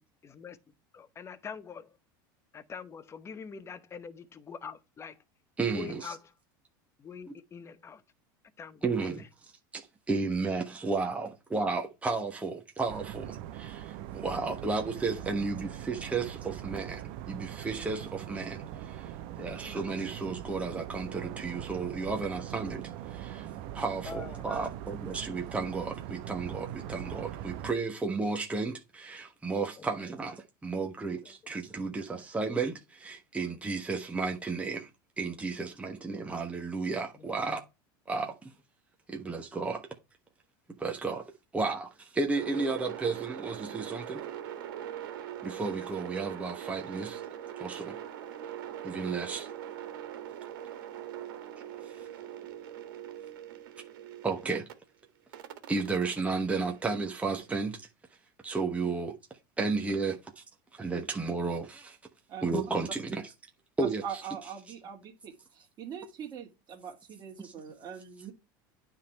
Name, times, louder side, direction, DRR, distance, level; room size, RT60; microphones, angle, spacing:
voice 1, 0.2-0.6 0.9-1.9 2.5-5.1 5.7-6.3 7.0-8.0 8.6-9.1 19.4-19.8 24.0-24.5 29.8-29.9 31.2-31.4 37.2-37.3, left 6 dB, 25° left, 0.9 m, -44 dB
voice 2, 5.6-6.1 8.8-9.2 9.7-9.8 10.1-19.1 19.4-23.3 23.7-34.9 35.2-37.6 38.1-38.3 39.1-39.8 40.8-41.2 41.5-44.2 45.4-47.2 47.6-48.0 48.8-49.5 54.2-54.7 55.7-57.8 58.4-59.1 59.6-60.4 60.7-62.0 62.4-63.3 63.8-64.0 67.4-67.5, right 4 dB, 10° right, 1.3 m, -33 dB
sound 1, 12.9-27.7, right 11 dB, 65° right, 0.8 m, -41 dB
sound 2, 42.3-54.7 55.3-57.5, right 10 dB, 80° right, 1.8 m, -42 dB
voice 3, 63.8-68.3, right 7 dB, 35° right, 2.6 m, -42 dB
9.6 x 3.8 x 4.3 m
supercardioid pair, 120°, 11 cm